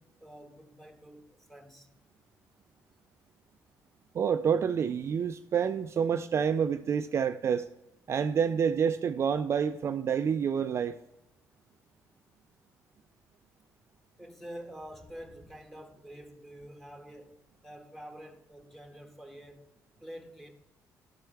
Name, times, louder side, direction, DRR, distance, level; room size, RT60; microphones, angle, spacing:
voice 1, 0.0-1.9 14.2-17.4 17.6-19.6 20.0-20.5, equal, 5° left, 1.4 m, -47 dB
voice 2, 4.1-7.7 8.1-11.0, right 7 dB, 45° right, 0.3 m, -28 dB
12.5 x 4.6 x 3.3 m
cardioid pair, 85°, 6 cm